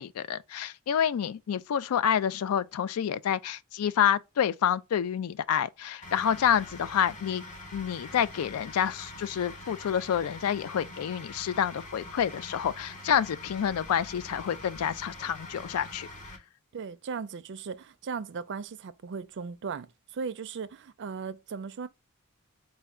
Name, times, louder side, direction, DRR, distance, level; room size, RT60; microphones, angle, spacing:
voice 1, 0.0-7.4 7.7-16.1, left 8 dB, 85° left, 0.4 m, -28 dB
sound 1, 6.0-16.4, left 1 dB, 35° left, 0.9 m, -44 dB
voice 2, 16.7-21.9, right 5 dB, 55° right, 0.4 m, -37 dB
4.3 x 2.2 x 3.5 m
head